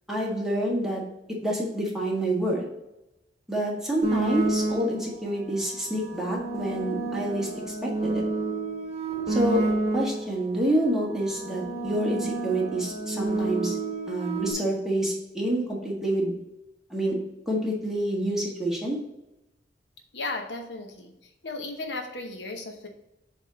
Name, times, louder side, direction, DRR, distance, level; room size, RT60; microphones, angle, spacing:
voice 1, 0.1-1.0 1.4-2.6 3.5-8.2 9.3-9.6 9.9-13.7 14.1-16.3 16.9-17.2 17.4-19.0, right 1 dB, ahead, -4 dB, 1.6 m, -27 dB
sound 1, 4.0-5.1 5.9-10.4 11.1-14.5, right 3 dB, 35° right, 1.4 m, -29 dB
voice 2, 20.1-21.1 21.4-22.9, left 2 dB, 75° left, 3 dB, 0.9 m, -35 dB
7.6 x 3.6 x 4.0 m, 0.92 s
head